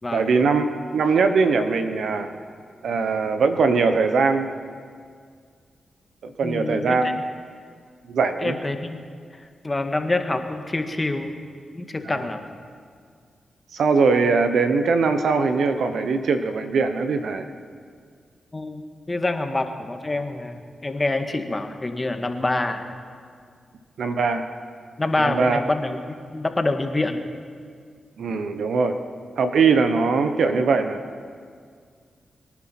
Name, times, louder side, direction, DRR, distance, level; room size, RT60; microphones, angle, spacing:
voice 1, 0.1-0.7 0.9-2.3 2.8-4.5 6.2-7.2 8.1-8.6 12.0-12.3 13.7-17.5 24.0-24.5 25.2-25.6 28.2-29.0 29.4-31.0, right 4 dB, 75° right, 8 dB, 1.0 m, -21 dB
voice 2, 6.4-7.1 8.4-9.0 9.6-11.3 11.7-12.4 18.5-22.8 25.0-27.2, left 2 dB, 30° left, 6 dB, 1.7 m, -26 dB
23.0 x 10.5 x 5.9 m, 2.1 s
supercardioid pair, 45°, 0 cm